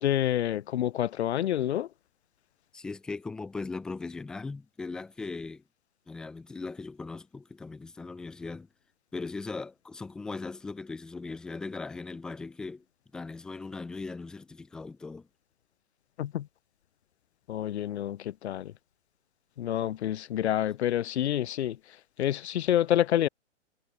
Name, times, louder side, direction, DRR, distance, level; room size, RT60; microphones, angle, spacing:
voice 1, 0.0-1.9 16.2-16.5 17.5-18.7 19.6-23.3, left 11 dB, 60° left, 0.6 m, -28 dB
voice 2, 2.7-5.6 6.1-8.7 9.1-12.8 13.1-15.3, left 3 dB, ahead, 0.4 m, -39 dB
hypercardioid pair, 130°, 37 cm